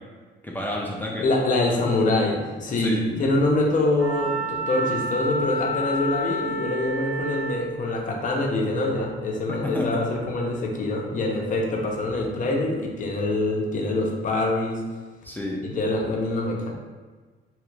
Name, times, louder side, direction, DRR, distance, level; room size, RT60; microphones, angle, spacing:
voice 1, 0.4-1.3 2.8-3.3 9.6-10.1 15.2-15.6, left 1 dB, 10° left, -3 dB, 0.4 m, -30 dB
voice 2, 1.2-14.8 15.6-16.7, left 2 dB, 45° left, 0 dB, 0.6 m, -25 dB
Wind instrument woodwind instrument, 4.0-7.7, right 1 dB, 10° right, 1.0 m, -29 dB
2.9 x 2.4 x 3.2 m, 1.4 s
cardioid pair, 120°, 19 cm